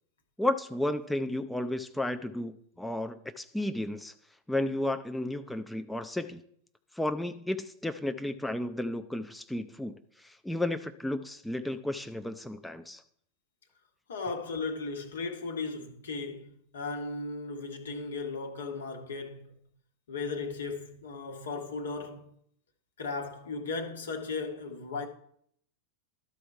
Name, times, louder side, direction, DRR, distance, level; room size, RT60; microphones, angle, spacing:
voice 1, 0.4-4.1 4.5-6.4 6.9-9.9 10.2-13.0, left 1 dB, 5° left, 0.4 m, -33 dB
voice 2, 14.1-19.6 20.1-22.3 23.0-25.1, left 4 dB, 65° left, 1.2 m, -36 dB
12.5 x 4.3 x 4.6 m
figure-of-eight pair, 90°, 0 cm